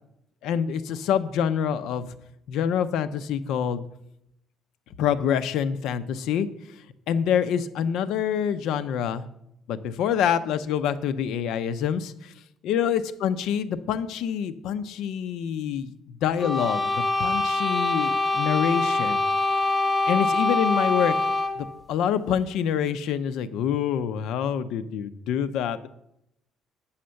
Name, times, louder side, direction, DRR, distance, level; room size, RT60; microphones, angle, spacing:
voice 1, 0.4-2.1 2.5-3.8 5.0-6.5 7.1-9.2 9.7-12.3 12.6-15.9 16.2-16.9 17.2-19.2 20.1-21.1 21.6-25.9, left 8 dB, 75° left, 12 dB, 0.6 m, -26 dB
sound 1, 16.4-21.7, left 2 dB, 15° left, 0.8 m, -24 dB
8.7 x 5.7 x 6.3 m, 0.78 s
cardioid pair, 155°, 0 cm